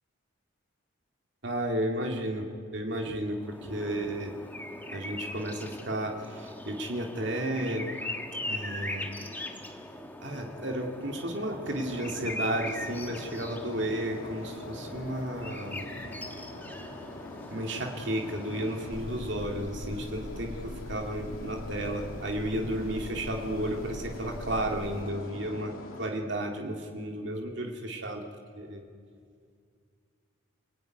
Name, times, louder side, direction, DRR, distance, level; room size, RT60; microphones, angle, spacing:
voice 1, 1.4-4.3 4.9-7.9 8.5-9.2 10.2-15.9 17.5-28.3 28.5-28.8, right 1 dB, 55° right, 2 dB, 2.6 m, -33 dB
sound 1, 3.3-19.2, left 1 dB, 10° left, 1.5 m, -41 dB
sound 2, 11.6-26.1, left 1 dB, 85° left, 2.8 m, -44 dB
sound 3, 18.9-25.0, left 2 dB, 55° left, 0.7 m, -43 dB
29.5 x 19.5 x 9.5 m, 2.2 s
head